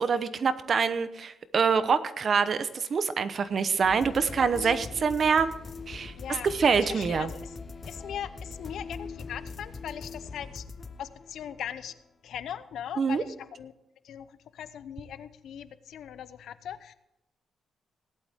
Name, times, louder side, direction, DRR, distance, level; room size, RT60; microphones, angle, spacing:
voice 1, 0.0-5.5 5.9-7.3 13.0-13.2, right 5 dB, 45° right, 12 dB, 0.9 m, -25 dB
sound 1, 3.8-11.9, left 4 dB, 35° left, 1.0 m, -41 dB
voice 2, 4.3-4.7 6.2-7.5 7.9-10.6 11.0-11.9 12.2-13.7 14.0-16.9, left 9 dB, 75° left, 13 dB, 0.8 m, -40 dB
17.5 x 11.0 x 3.6 m, 0.89 s
cardioid pair, 115°, 0 cm